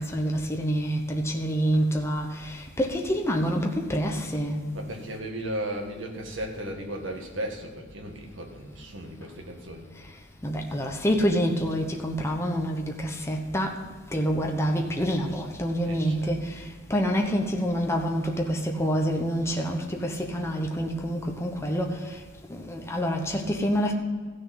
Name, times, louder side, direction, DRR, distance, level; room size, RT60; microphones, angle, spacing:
voice 1, 0.0-4.6 10.4-13.8 14.1-22.2 22.5-23.9, equal, 15° left, 1.1 m, -27 dB
voice 2, 4.7-9.9 15.8-16.4, right 1 dB, 75° right, 2.0 m, -36 dB
15.0 x 6.7 x 5.9 m
head